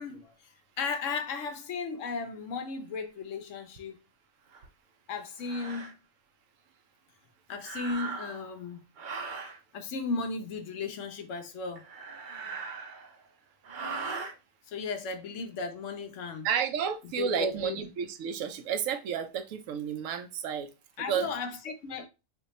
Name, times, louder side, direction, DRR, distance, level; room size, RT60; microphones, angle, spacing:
voice 1, 0.0-4.0 5.1-5.9 7.5-8.8 9.7-11.8 14.7-16.5 17.2-17.8 21.0-22.1, left 4 dB, 75° left, 1.0 m, -35 dB
sound 1, 4.5-4.7 5.4-5.9 7.6-8.5 9.0-9.6 11.8-13.2 13.6-14.3, right 4 dB, 55° right, 0.6 m, -39 dB
voice 2, 16.4-20.7 21.1-21.3, right 8 dB, 90° right, 1.0 m, -31 dB
3.3 x 2.2 x 4.0 m
omnidirectional pair, 1.3 m